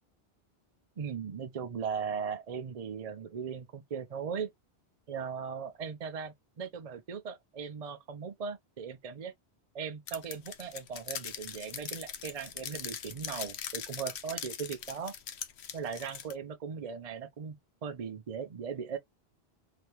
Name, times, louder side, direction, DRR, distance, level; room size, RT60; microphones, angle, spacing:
voice 1, 1.0-4.5 5.1-9.3 9.7-15.2 15.7-17.6 17.8-19.0, right 6 dB, 45° right, 0.6 m, -38 dB
sound 1, 10.1-16.3, left 8 dB, 85° left, 1.0 m, -41 dB
3.9 x 2.8 x 3.2 m
omnidirectional pair, 1.1 m